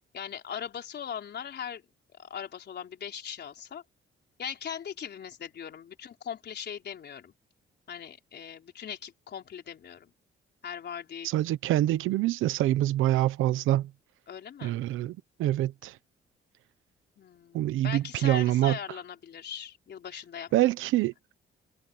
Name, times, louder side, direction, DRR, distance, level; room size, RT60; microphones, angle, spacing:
voice 1, 0.1-1.8 2.2-3.8 4.4-7.3 7.9-10.1 10.6-11.3 14.3-14.8 17.2-20.5, left 8 dB, 60° left, 4.2 m, -40 dB
voice 2, 11.3-13.9 14.6-15.9 17.5-18.8 20.5-21.1, right 14 dB, 90° right, 1.1 m, -25 dB
cardioid pair, 90°, 20 cm